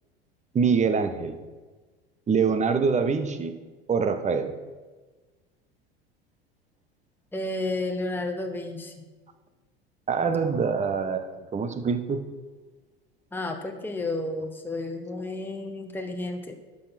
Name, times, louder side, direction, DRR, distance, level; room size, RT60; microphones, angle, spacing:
voice 1, 0.5-1.4 2.3-3.6 3.9-4.5 10.1-12.2, right 5 dB, 25° right, 9 dB, 1.1 m, -25 dB
voice 2, 7.3-9.0 13.3-16.6, left 2 dB, 5° left, 3 dB, 1.2 m, -32 dB
11.5 x 6.4 x 6.1 m, 1.3 s
figure-of-eight pair, 75°, 31 cm